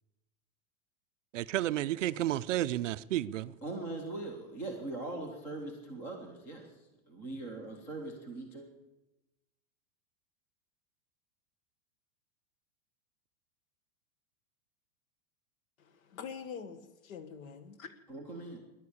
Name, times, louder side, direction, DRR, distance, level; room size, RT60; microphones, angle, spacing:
voice 1, 1.3-3.6, right 13 dB, 55° right, 15 dB, 0.5 m, -31 dB
voice 2, 3.6-8.7 18.1-18.6, right 2 dB, 5° left, 3 dB, 0.5 m, -41 dB
voice 3, 15.8-17.9, left 6 dB, 65° left, 12 dB, 1.7 m, -45 dB
14.5 x 11.0 x 8.6 m, 1.0 s
supercardioid pair, 180°, 44 cm